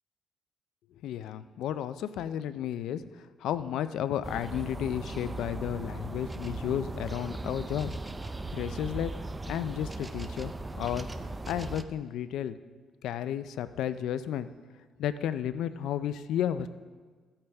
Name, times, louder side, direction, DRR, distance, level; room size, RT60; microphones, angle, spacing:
voice 1, 1.0-8.0 8.5-9.1 9.5-10.5 10.8-11.1 11.5-12.6 13.0-14.5 15.0-16.7, left 10 dB, 85° left, 13 dB, 0.4 m, -32 dB
sound 1, 4.2-11.8, right 2 dB, 20° right, 0.5 m, -38 dB
14.0 x 8.7 x 3.5 m, 1.5 s
cardioid pair, 90°, 0 cm